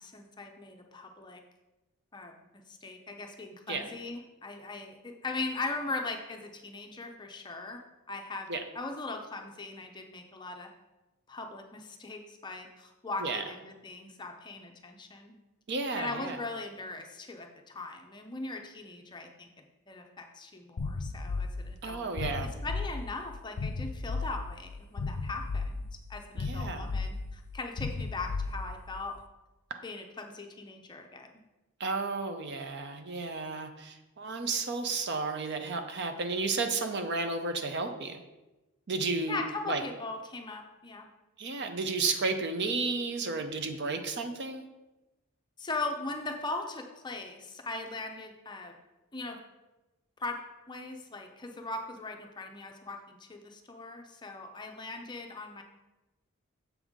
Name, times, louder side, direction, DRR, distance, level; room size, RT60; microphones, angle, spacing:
voice 1, 0.0-1.4 2.1-2.3 2.7-7.8 8.1-8.5 8.7-10.7 11.3-15.3 16.0-22.3 22.6-25.8 26.1-29.2 29.8-31.3 39.3-41.1 45.6-48.8 49.1-49.4 50.2-50.4 50.7-55.6, left 3 dB, 20° left, 3 dB, 0.5 m, -39 dB
voice 2, 15.7-16.4 21.8-22.5 26.3-26.9 31.8-38.2 38.9-39.8 41.4-44.6, right 3 dB, 50° right, 7 dB, 0.6 m, -32 dB
sound 1, 20.8-29.0, left 3 dB, 75° left, 0.5 m, -35 dB
7.0 x 5.5 x 3.6 m, 1.0 s
head